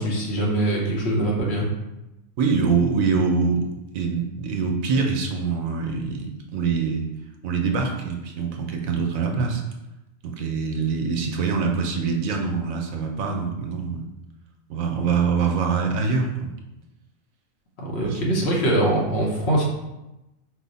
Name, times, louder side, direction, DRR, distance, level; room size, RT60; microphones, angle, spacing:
voice 1, 0.0-1.7 17.8-19.6, right 1 dB, 55° left, -3 dB, 1.0 m, -23 dB
voice 2, 2.4-7.1 7.4-9.6 10.2-14.0 14.7-16.5 18.0-18.2, right 5 dB, 85° right, 2 dB, 1.1 m, -24 dB
4.7 x 2.0 x 3.9 m, 0.96 s
omnidirectional pair, 1.4 m